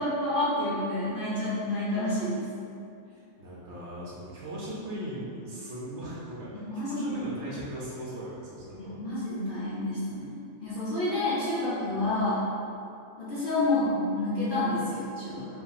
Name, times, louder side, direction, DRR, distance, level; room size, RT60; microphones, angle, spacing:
voice 1, 0.0-2.5 6.5-7.2 8.8-12.5 13.2-15.6, left 1 dB, 50° left, -10 dB, 0.7 m, -29 dB
voice 2, 3.1-9.0, right 1 dB, 60° right, -7 dB, 0.9 m, -38 dB
2.7 x 2.7 x 3.9 m, 2.6 s
omnidirectional pair, 1.5 m